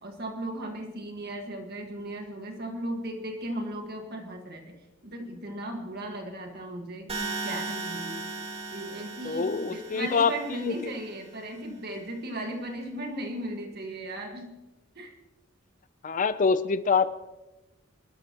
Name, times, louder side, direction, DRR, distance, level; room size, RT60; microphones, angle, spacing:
voice 1, 0.0-8.3 8.7-14.6 15.0-15.2, right 1 dB, 55° right, 3 dB, 1.7 m, -37 dB
sound 1, 7.1-11.1, right 3 dB, 30° right, 2.1 m, -37 dB
voice 2, 9.2-10.9 16.0-17.1, left 5 dB, 40° left, 13 dB, 0.5 m, -25 dB
26.0 x 13.0 x 3.0 m, 1.0 s
head